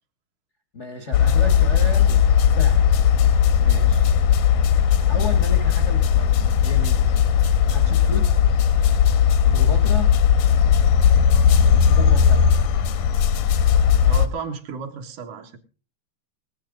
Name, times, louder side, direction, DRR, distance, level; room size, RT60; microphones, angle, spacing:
voice 1, 0.7-2.2 2.5-2.9 5.1-7.0 7.7-8.3 9.5-10.1 11.6-12.6, left 4 dB, 65° left, 7 dB, 0.7 m, -33 dB
sound 1, 1.1-14.3, left 8 dB, 85° left, 2.6 m, -17 dB
voice 2, 3.6-4.0 9.4-9.9 14.0-15.6, right 4 dB, 80° right, 5 dB, 3.0 m, -34 dB
18.0 x 13.5 x 3.8 m, 0.36 s
omnidirectional pair, 3.6 m